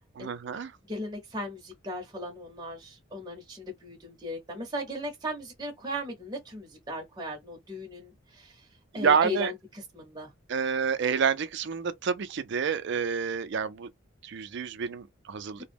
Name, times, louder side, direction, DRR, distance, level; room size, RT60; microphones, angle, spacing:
voice 1, 0.2-0.7 8.9-9.5 10.5-13.9 14.2-15.6, right 6 dB, 60° right, 0.4 m, -28 dB
voice 2, 0.9-8.7 8.9-10.3 15.6-15.7, left 1 dB, 20° right, 0.7 m, -37 dB
2.2 x 2.0 x 3.3 m
head